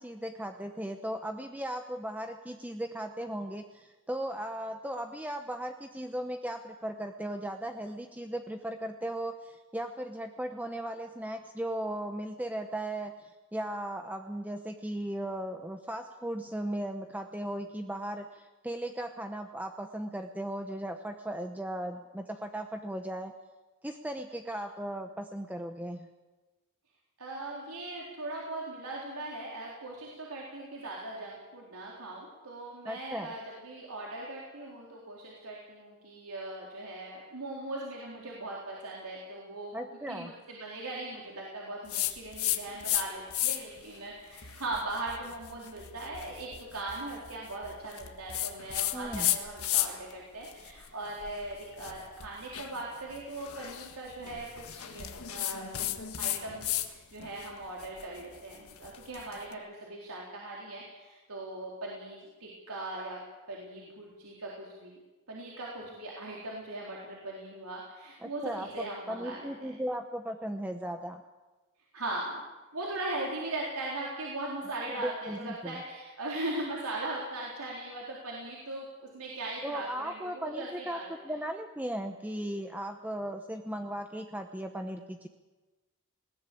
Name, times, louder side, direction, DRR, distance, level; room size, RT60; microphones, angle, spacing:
voice 1, 0.0-23.3 23.8-26.1 32.9-33.3 39.7-40.3 48.9-49.3 68.2-71.2 75.0-75.8 79.6-85.3, right 1 dB, 5° right, 5 dB, 0.8 m, -37 dB
voice 2, 27.2-39.8 40.1-55.7 56.2-63.2 63.5-65.0 65.3-69.7 71.9-72.4 72.7-78.9 79.1-81.4, right 2 dB, 85° right, -3 dB, 4.0 m, -39 dB
sound 1, 41.9-43.0 43.3-43.8 44.3-50.1 50.4-56.9 57.2-59.4, left 13 dB, 80° left, 1.6 m, -34 dB
20.0 x 18.0 x 8.7 m, 1.2 s
head